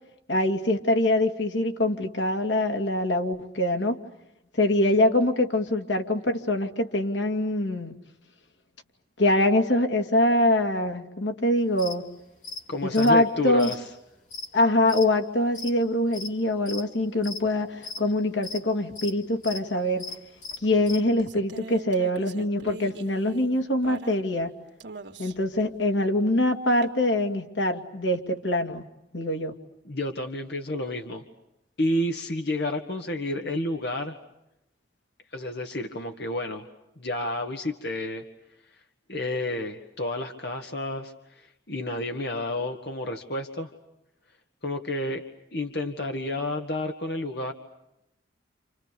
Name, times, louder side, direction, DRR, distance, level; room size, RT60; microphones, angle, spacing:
voice 1, 0.3-4.0 4.6-7.9 9.2-12.1 12.8-13.7 14.5-20.1 20.6-24.5 25.2-28.8 29.1-29.5, left 1 dB, 90° left, 4 dB, 2.7 m, -24 dB
sound 1, 11.8-12.0 12.4-12.6 12.9-15.1 15.4-16.3 16.6-16.8 17.2-18.0 18.4-18.6 19.0-19.6 19.9-21.0, left 4 dB, 45° left, 3.8 m, -37 dB
voice 2, 12.7-13.8 29.9-31.3 31.8-34.2 35.3-36.7 37.0-38.2 39.1-43.7 44.6-45.2 45.5-47.5, left 1 dB, 65° left, 4 dB, 1.9 m, -30 dB
sound 2, 20.5-24.5 24.8-25.5 26.8-26.9, right 3 dB, 85° right, 2.0 m, -42 dB
29.5 x 29.0 x 6.9 m, 0.87 s
head